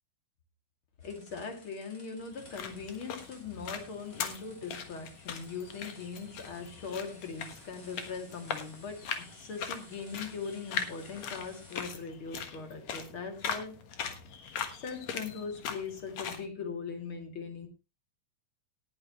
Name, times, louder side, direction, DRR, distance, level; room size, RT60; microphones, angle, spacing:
voice 1, 1.0-13.8 14.8-17.7, left 5 dB, 45° left, 2.9 m, -40 dB
sound 1, 1.0-12.0, left 2 dB, 25° left, 3.6 m, -56 dB
sound 2, 2.3-16.4, left 7 dB, 65° left, 2.5 m, -40 dB
18.5 x 8.9 x 3.0 m
omnidirectional pair, 3.6 m